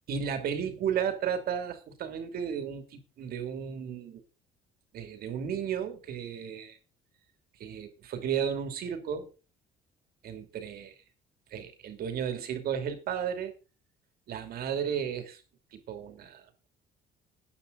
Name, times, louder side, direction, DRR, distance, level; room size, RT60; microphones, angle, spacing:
voice 1, 0.1-4.2 4.9-6.8 7.6-9.3 10.2-10.9 11.5-13.5 14.3-15.4 15.7-16.7, right 8 dB, 65° right, 2.7 m, -34 dB
13.5 x 9.6 x 4.0 m
cardioid pair, 110°, 17 cm